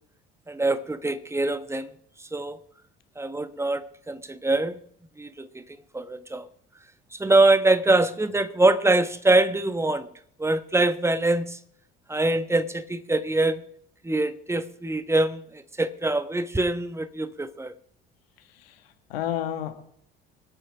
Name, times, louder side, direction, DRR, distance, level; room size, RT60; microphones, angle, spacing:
voice 1, 0.5-1.9 2.2-2.6 3.2-4.8 5.2-6.5 7.1-10.1 10.4-11.6 12.1-13.6 14.0-17.7, right 2 dB, 10° right, 1.2 m, -24 dB
voice 2, 18.4-19.7, left 11 dB, 80° left, 1.7 m, -32 dB
26.0 x 8.9 x 3.5 m
hypercardioid pair, 60°, 29 cm